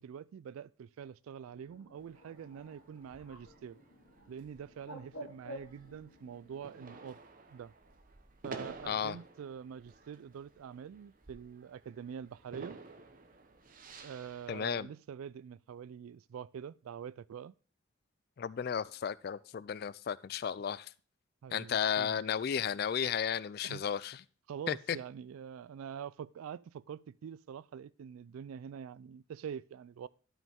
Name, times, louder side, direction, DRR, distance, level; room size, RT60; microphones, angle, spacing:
voice 1, 0.0-3.8 4.3-7.2 7.5-7.7 8.4-12.8 14.0-17.5 21.4-22.2 23.6-23.8 24.5-30.1, right 8 dB, 90° right, 0.3 m, -45 dB
Bird, 1.5-7.0, right 1 dB, 75° left, 2.4 m, -52 dB
sound 1, 2.0-14.5, right 3 dB, 40° right, 0.9 m, -53 dB
voice 2, 14.5-14.9 18.4-20.9 21.5-24.2 24.7-25.0, left 7 dB, 50° left, 0.3 m, -34 dB
12.0 x 5.4 x 3.5 m
head